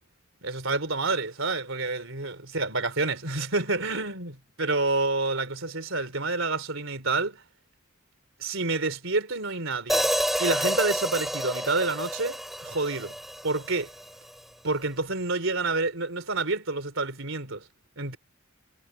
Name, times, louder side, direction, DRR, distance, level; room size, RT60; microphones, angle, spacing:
voice 1, 0.4-7.4 8.4-10.1 10.4-13.1 13.4-13.9 14.6-17.7 18.0-18.2, right 3 dB, 65° right, 4.0 m, -28 dB
Hi-hat, 9.9-14.1, equal, ahead, 6.9 m, -29 dB
head